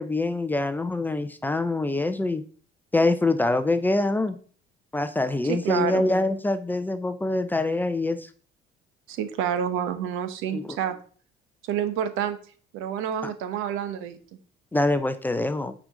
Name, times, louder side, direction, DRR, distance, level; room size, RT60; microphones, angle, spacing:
voice 1, 0.0-2.4 2.9-4.4 4.9-8.3 10.5-10.8 13.2-13.3 14.7-15.7, left 2 dB, 10° left, 10 dB, 0.4 m, -25 dB
voice 2, 5.5-6.1 9.1-11.0 11.6-12.4 12.7-14.2, right 9 dB, 85° right, 10 dB, 1.1 m, -28 dB
9.2 x 5.0 x 3.7 m, 0.43 s
cardioid pair, 160°, 20 cm